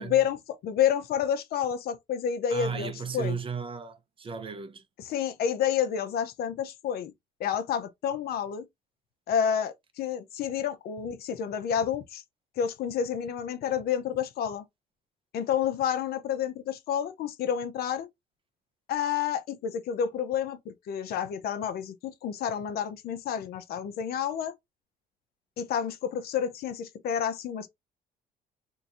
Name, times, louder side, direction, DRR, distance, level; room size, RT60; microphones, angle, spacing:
voice 1, 0.0-3.4 5.0-7.1 7.4-8.7 9.3-12.2 12.6-14.6 15.3-18.1 18.9-24.5 25.6-27.7, left 8 dB, 65° left, 0.8 m, -29 dB
voice 2, 2.5-4.8, right 6 dB, 30° right, 0.7 m, -35 dB
2.9 x 2.7 x 3.7 m
cardioid pair, 110°, 17 cm